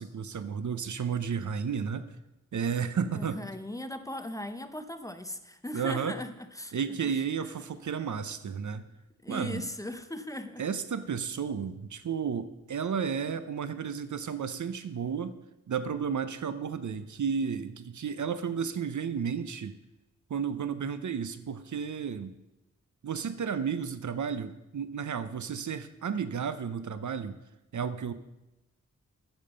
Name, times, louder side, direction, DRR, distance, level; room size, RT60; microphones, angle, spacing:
voice 1, 0.0-2.1 2.5-3.4 5.7-6.1 6.7-8.8 9.3-9.6 10.6-15.3 15.7-19.8 20.3-22.3 23.0-27.4 27.7-28.1, right 6 dB, 70° right, 12 dB, 0.7 m, -32 dB
voice 2, 3.1-7.1 9.2-10.6, left 1 dB, 10° left, 9 dB, 0.8 m, -39 dB
8.9 x 7.3 x 6.6 m, 0.97 s
wide cardioid pair, 100°, 30 cm